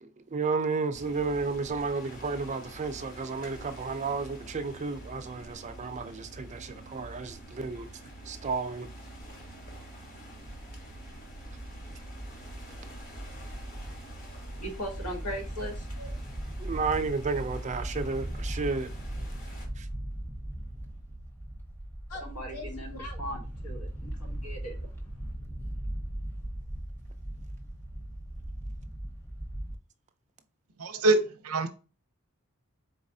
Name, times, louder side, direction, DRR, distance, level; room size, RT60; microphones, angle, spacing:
voice 1, 0.0-7.9 8.3-8.9 16.6-18.9 19.8-19.9, right 4 dB, 35° right, 0.5 m, -32 dB
sound 1, 0.9-19.7, right 1 dB, 40° left, 1.3 m, -46 dB
sound 2, 10.4-29.8, right 1 dB, 10° left, 0.9 m, -39 dB
voice 2, 14.2-16.1 22.1-24.9, equal, 85° left, 1.5 m, -39 dB
voice 3, 30.8-31.7, right 2 dB, 80° right, 0.7 m, -25 dB
4.0 x 4.0 x 2.7 m
head